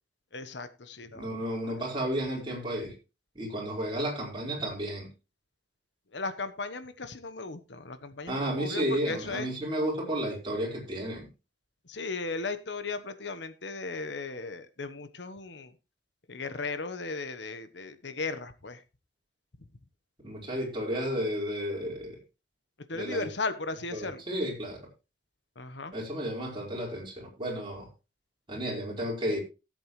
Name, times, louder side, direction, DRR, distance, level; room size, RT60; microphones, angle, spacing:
voice 1, 0.3-1.3 1.6-1.8 6.1-9.5 11.8-15.7 16.3-18.8 22.9-24.2 25.6-25.9, left 3 dB, 70° left, 11 dB, 1.2 m, -36 dB
voice 2, 1.1-2.9 3.3-5.1 8.3-11.3 20.2-22.2 22.9-23.3 23.9-24.8 25.9-27.9 28.5-29.4, equal, 30° right, -2 dB, 4.8 m, -32 dB
17.5 x 7.8 x 3.2 m, 0.29 s
head